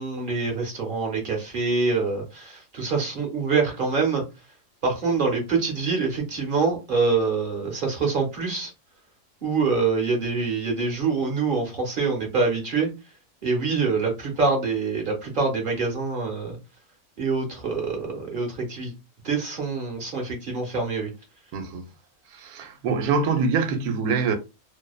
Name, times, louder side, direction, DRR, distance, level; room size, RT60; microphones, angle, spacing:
voice 1, 0.0-4.2 4.8-8.7 9.4-12.9 13.4-16.6 17.2-18.9 19.2-21.1, right 4 dB, 45° right, 0.7 m, -25 dB
voice 2, 21.5-21.9 22.3-24.3, right 5 dB, 80° right, 1.1 m, -24 dB
2.7 x 2.1 x 2.3 m
omnidirectional pair, 1.6 m